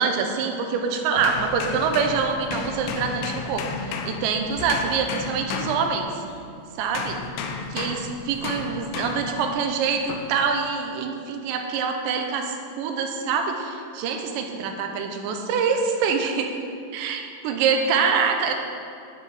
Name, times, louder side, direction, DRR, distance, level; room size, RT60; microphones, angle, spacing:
voice 1, 0.0-6.1 6.8-7.2 7.7-16.5 16.9-18.5, right 5 dB, 85° right, 4 dB, 3.1 m, -25 dB
sound 1, 1.2-6.5 6.9-9.5 10.1-10.4, left 5 dB, 90° left, 2.1 m, -33 dB
9.9 x 7.5 x 4.8 m, 2.5 s
omnidirectional pair, 5.1 m